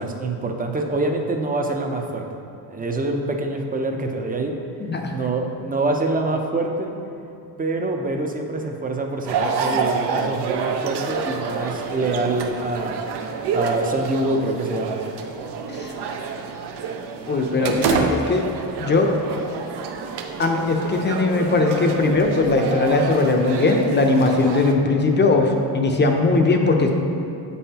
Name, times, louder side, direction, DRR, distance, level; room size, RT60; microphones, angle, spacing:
voice 1, 0.0-2.3 2.7-4.5 5.1-6.9 7.6-13.0 13.3-15.0, right 2 dB, 20° right, 3 dB, 0.5 m, -25 dB
sound 1, 9.3-24.7, right 5 dB, 75° right, 0.6 m, -28 dB
voice 2, 17.3-18.4 18.8-19.1 20.4-26.9, left 3 dB, 25° left, 3 dB, 0.6 m, -19 dB
7.8 x 5.5 x 2.9 m, 2.7 s
cardioid pair, 115°, 41 cm